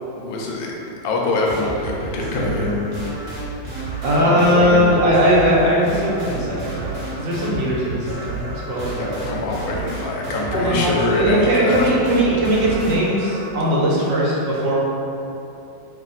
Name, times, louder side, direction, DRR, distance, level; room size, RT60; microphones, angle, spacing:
voice 1, 0.2-0.7 1.0-2.8 4.2-5.7 8.9-11.9, left 2 dB, 85° left, -1 dB, 1.4 m, -24 dB
sound 1, 1.4-13.5, right 2 dB, 50° right, 1.3 m, -31 dB
voice 2, 4.0-9.1 10.5-14.8, equal, 75° right, -6 dB, 1.5 m, -19 dB
3.2 x 2.8 x 3.8 m, 2.9 s
omnidirectional pair, 2.0 m